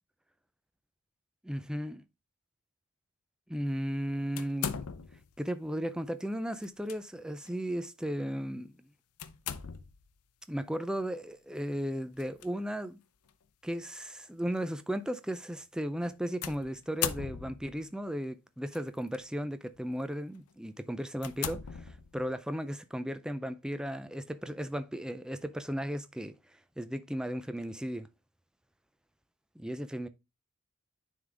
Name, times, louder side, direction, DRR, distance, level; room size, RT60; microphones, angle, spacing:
voice 1, 1.4-2.0 3.5-4.8 5.4-8.7 10.5-13.0 13.6-28.1 29.6-30.1, equal, 5° right, 0.3 m, -35 dB
sound 1, 4.4-5.3 6.6-7.0 7.4-7.6 9.2-10.1 12.2-12.5 13.3-13.4 16.4-17.8 18.7-19.2 19.7-19.9 20.5-20.6 21.2-22.4, left 8 dB, 85° left, 0.6 m, -38 dB
9.5 x 3.7 x 3.3 m
head